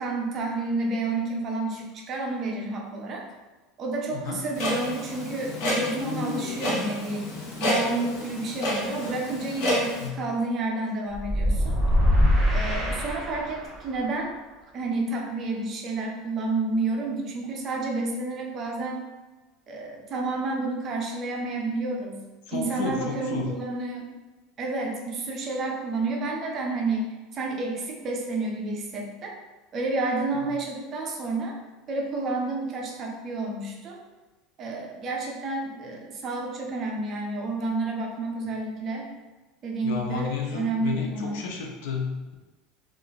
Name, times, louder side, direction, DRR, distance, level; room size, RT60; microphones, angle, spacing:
voice 1, 0.0-3.3 3.8-7.3 7.6-11.8 12.5-14.3 14.7-19.0 19.7-22.2 22.5-24.1 24.6-27.1 27.3-29.4 29.7-31.6 31.9-34.0 34.6-39.1 39.6-41.4, right 3 dB, 30° right, 1 dB, 0.5 m, -30 dB
voice 2, 4.1-4.4 10.0-10.2 22.5-23.5 39.8-42.3, left 5 dB, 75° left, 1 dB, 0.6 m, -32 dB
Clock, 4.5-10.1, left 1 dB, 55° left, 0.9 m, -30 dB
sound 1, 11.1-13.8, equal, 10° left, 1.0 m, -23 dB
2.8 x 2.4 x 3.8 m, 1.2 s
cardioid pair, 160°, 0 cm